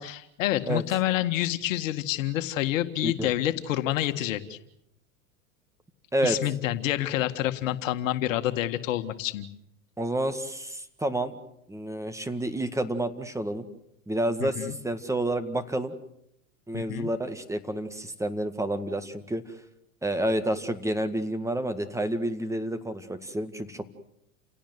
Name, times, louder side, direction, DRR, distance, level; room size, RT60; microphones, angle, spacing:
voice 1, 0.0-4.6 6.2-9.5 14.4-14.8 16.7-17.1, left 13 dB, 65° left, 9 dB, 1.9 m, -28 dB
voice 2, 10.0-11.3 11.7-13.6 14.1-15.9 16.7-19.4 20.0-23.9, right 1 dB, 5° right, 10 dB, 1.9 m, -29 dB
29.5 x 17.5 x 8.0 m, 0.77 s
hypercardioid pair, 100°, 42 cm